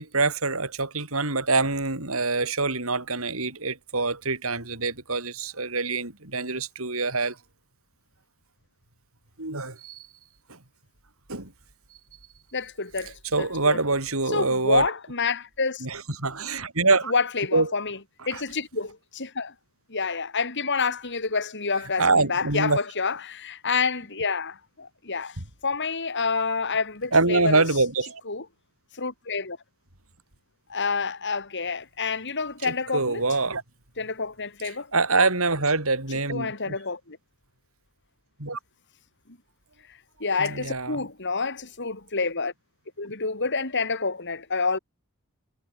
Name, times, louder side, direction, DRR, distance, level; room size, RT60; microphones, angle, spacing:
voice 1, 0.0-7.4 9.4-10.1 10.5-10.6 11.3-11.5 13.3-14.9 15.8-17.1 17.5-17.7 18.3-18.4 22.0-22.8 27.1-28.2 32.6-33.6 34.9-36.7 38.4-38.6 40.4-41.0, right 3 dB, 70° right, 6.1 m, -25 dB
voice 2, 12.5-13.8 14.3-15.9 17.0-18.0 18.3-19.5 19.9-27.6 28.3-28.4 28.9-29.6 30.7-33.2 34.0-34.9 36.3-37.2 40.2-42.5 43.0-44.8, left 4 dB, 55° left, 4.8 m, -28 dB
head